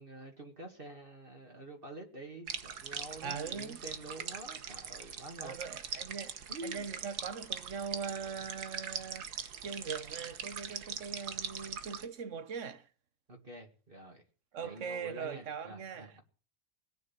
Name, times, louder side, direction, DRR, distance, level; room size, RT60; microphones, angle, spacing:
voice 1, 0.0-5.6 6.5-6.9 13.3-14.2 14.6-16.2, right 1 dB, 35° right, 2.3 m, -47 dB
sound 1, 2.5-12.1, right 7 dB, 80° right, 1.8 m, -42 dB
voice 2, 3.2-3.8 5.4-9.2 9.6-12.9 14.5-16.1, right 6 dB, 55° right, 1.4 m, -41 dB
18.0 x 9.5 x 7.3 m
omnidirectional pair, 1.7 m